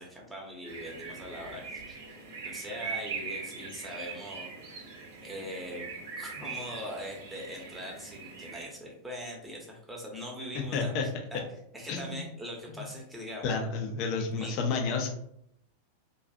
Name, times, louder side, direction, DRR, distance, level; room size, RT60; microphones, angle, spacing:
voice 1, 0.0-2.0 2.4-4.9 5.2-5.9 6.2-11.4 11.7-13.6 13.9-14.5, equal, 5° right, -1 dB, 0.7 m, -42 dB
sound 1, 0.6-8.6, right 4 dB, 55° right, 0.6 m, -41 dB
voice 2, 10.7-11.1 11.9-12.2 12.7-12.8 13.4-15.1, left 4 dB, 40° left, 2 dB, 0.4 m, -30 dB
2.5 x 2.3 x 2.6 m, 0.72 s
figure-of-eight pair, 90°, 0 cm